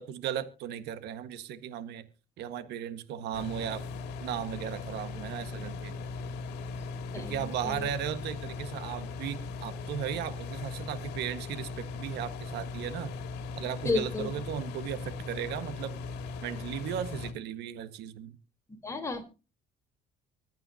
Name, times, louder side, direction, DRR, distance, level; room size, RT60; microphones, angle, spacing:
voice 1, 0.0-2.1 2.4-3.8 4.2-5.9 7.2-13.1 13.6-16.0 16.4-18.4, right 9 dB, 80° right, 11 dB, 1.6 m, -36 dB
sound 1, 3.3-17.3, left 4 dB, 90° left, 1.9 m, -39 dB
voice 2, 7.1-7.9 13.8-14.3 18.8-19.3, left 3 dB, 15° left, 4 dB, 3.8 m, -32 dB
25.0 x 9.0 x 2.8 m, 0.32 s
cardioid pair, 110°, 17 cm